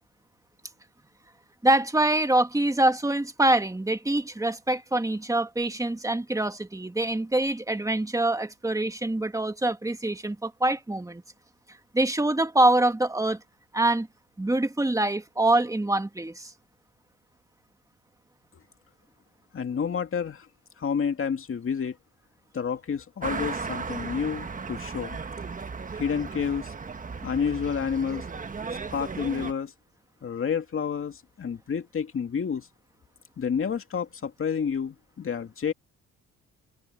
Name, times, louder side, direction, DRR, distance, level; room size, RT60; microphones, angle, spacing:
voice 1, 1.6-11.2 11.9-13.4 13.7-14.1 14.4-16.5, right 1 dB, 10° right, 1.9 m, -25 dB
voice 2, 19.5-20.5 20.8-22.0 22.5-25.2 25.9-26.7 27.2-28.3 28.9-29.7 30.2-32.7 33.4-35.7, left 6 dB, 45° left, 2.5 m, -29 dB
sound 1, 23.2-29.5, right 5 dB, 25° right, 1.3 m, -36 dB
cardioid pair, 90°, 30 cm